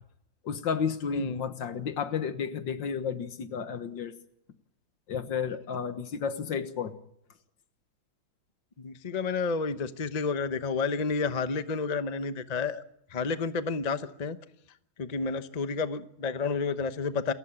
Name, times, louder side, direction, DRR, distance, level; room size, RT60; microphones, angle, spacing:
voice 1, 0.4-4.1 5.1-7.0, left 6 dB, 65° left, 10 dB, 1.9 m, -32 dB
voice 2, 1.1-1.5 8.8-12.8 13.1-14.4 15.0-17.3, left 4 dB, 40° left, 11 dB, 0.6 m, -30 dB
28.5 x 14.5 x 8.9 m, 0.75 s
omnidirectional pair, 2.3 m